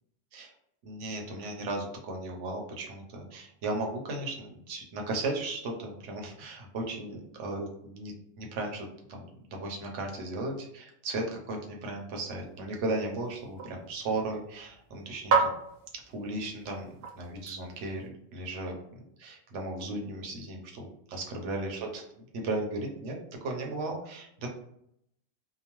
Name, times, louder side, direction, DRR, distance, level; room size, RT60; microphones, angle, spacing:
voice 1, 0.8-15.5 16.1-22.0 22.3-23.2 23.4-24.5, right 2 dB, 85° right, 1 dB, 1.0 m, -36 dB
sound 1, 12.3-18.1, right 4 dB, 65° right, 0.8 m, -34 dB
2.8 x 2.0 x 2.9 m, 0.74 s
omnidirectional pair, 1.2 m